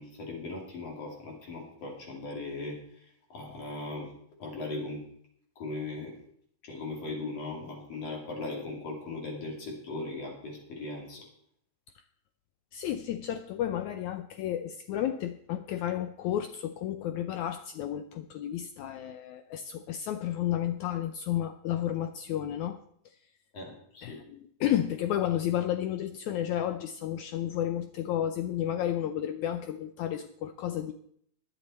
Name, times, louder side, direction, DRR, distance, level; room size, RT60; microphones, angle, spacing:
voice 1, 0.0-2.8 3.3-4.1 4.4-5.0 5.6-6.2 6.6-11.2 23.5-24.2, left 2 dB, 45° left, -1 dB, 3.6 m, -38 dB
voice 2, 12.7-22.8 24.0-30.9, left 11 dB, 90° left, 8 dB, 1.6 m, -32 dB
21.0 x 7.4 x 4.3 m, 0.66 s
omnidirectional pair, 4.1 m